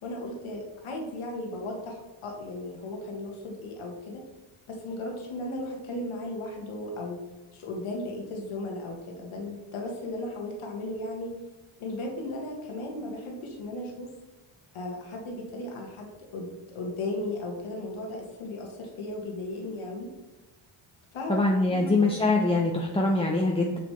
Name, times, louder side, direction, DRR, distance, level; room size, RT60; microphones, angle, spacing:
voice 1, 0.0-4.2 4.7-7.2 7.5-11.3 11.8-14.1 14.7-16.1 16.3-20.1 21.1-22.2, left 1 dB, 85° left, 0 dB, 1.5 m, -36 dB
voice 2, 21.3-23.8, left 2 dB, 10° left, -1 dB, 0.7 m, -24 dB
7.0 x 6.1 x 3.2 m, 1.1 s
cardioid pair, 95°, 48 cm